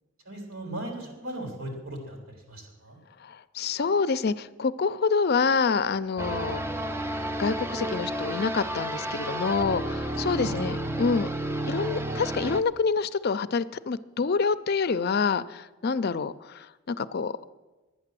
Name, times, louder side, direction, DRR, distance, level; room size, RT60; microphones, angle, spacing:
voice 1, 0.3-2.2 2.5-3.0 10.3-10.9, right 1 dB, 80° right, 1 dB, 3.6 m, -37 dB
voice 2, 3.5-6.6 7.4-11.3 11.7-17.3, left 5 dB, 50° left, 14 dB, 0.4 m, -27 dB
sound 1, 6.2-12.6, right 1 dB, 10° right, 0.5 m, -31 dB
11.5 x 9.4 x 7.6 m, 1.2 s
head